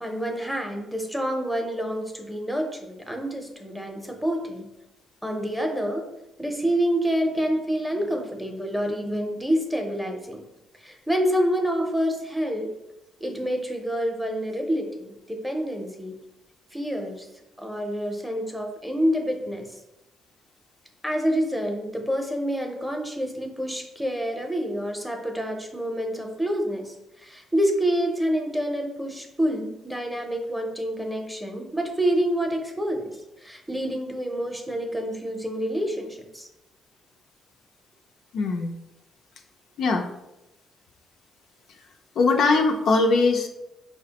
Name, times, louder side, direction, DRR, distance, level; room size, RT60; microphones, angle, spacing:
voice 1, 0.0-4.7 5.2-6.0 6.4-10.4 10.8-12.7 13.2-16.2 16.7-17.3 17.6-19.7 21.0-33.1 33.4-36.5, equal, 5° right, 2 dB, 0.6 m, -27 dB
voice 2, 38.3-38.7 39.8-40.1 42.2-43.5, left 3 dB, 70° left, 3 dB, 0.4 m, -21 dB
4.8 x 2.1 x 2.8 m, 0.92 s
cardioid pair, 90°, 0 cm